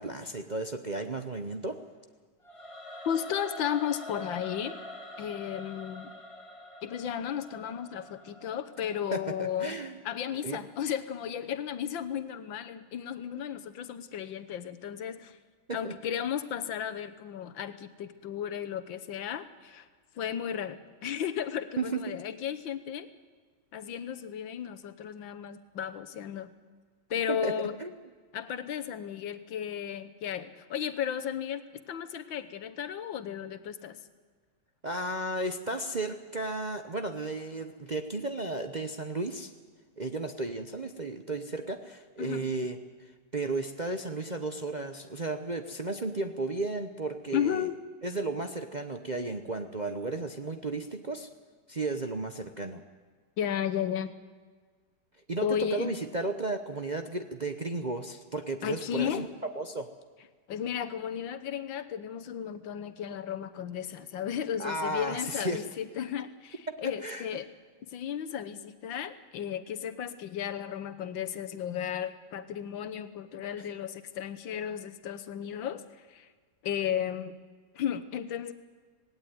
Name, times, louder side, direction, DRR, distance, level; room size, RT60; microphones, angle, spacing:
voice 1, 0.0-1.8 9.1-10.0 10.4-10.6 15.7-15.9 21.8-22.2 27.3-27.9 34.8-39.5 40.0-42.8 43.3-47.7 48.0-51.3 51.7-52.8 55.3-59.9 64.6-65.6 66.8-67.3 73.6-73.7, right 2 dB, 35° right, 6 dB, 0.7 m, -34 dB
Singing / Musical instrument, 2.4-9.5, left 1 dB, 15° left, 1.9 m, -45 dB
voice 2, 3.1-4.8 5.2-6.1 6.8-9.8 10.1-15.4 15.7-19.9 20.2-23.1 23.7-26.5 27.1-27.8 28.3-34.0 42.2-42.4 47.3-47.8 53.4-54.1 55.4-56.0 58.6-59.2 60.5-67.5 67.9-75.8 76.1-76.3 76.6-77.4 77.8-78.5, left 9 dB, 85° left, 11 dB, 1.8 m, -34 dB
18.0 x 17.5 x 9.3 m, 1.6 s
omnidirectional pair, 2.0 m